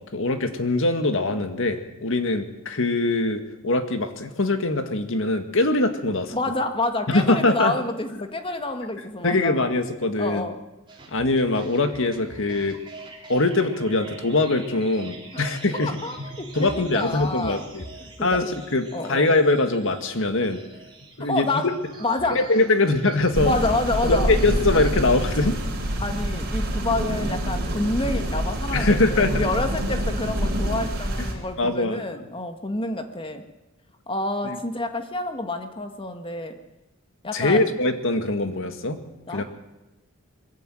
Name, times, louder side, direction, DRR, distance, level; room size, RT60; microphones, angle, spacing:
voice 1, 0.0-6.3 7.1-7.8 9.2-10.4 11.1-12.8 13.3-15.9 16.6-17.9 18.2-20.6 21.2-21.7 22.3-23.5 24.0-25.6 28.7-29.4 31.6-32.0 34.4-34.6 37.3-39.0 39.3-39.4, left 2 dB, 65° left, 7 dB, 2.0 m, -22 dB
voice 2, 6.3-9.6 10.2-10.6 15.8-17.7 18.2-18.4 18.9-19.3 21.2-21.7 22.0-22.4 23.4-24.3 26.0-33.4 34.1-36.6 37.2-37.7 39.3-39.4, left 2 dB, 25° left, 6 dB, 1.8 m, -28 dB
sound 1, 10.9-29.6, right 2 dB, 25° right, 3.9 m, -44 dB
sound 2, 23.3-31.3, equal, 50° right, 5.5 m, -26 dB
21.5 x 15.0 x 9.2 m, 1.0 s
head